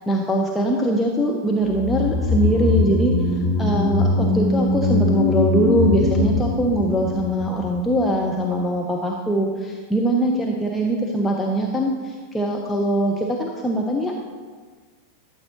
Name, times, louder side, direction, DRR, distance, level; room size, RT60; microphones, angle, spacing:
voice 1, 0.1-3.1 3.6-14.1, right 1 dB, 10° left, 0 dB, 0.8 m, -22 dB
sound 1, 1.7-8.1 8.4-8.5, left 3 dB, 45° left, 1.9 m, -21 dB
13.0 x 7.7 x 3.0 m, 1.5 s
figure-of-eight pair, 90°, 0 cm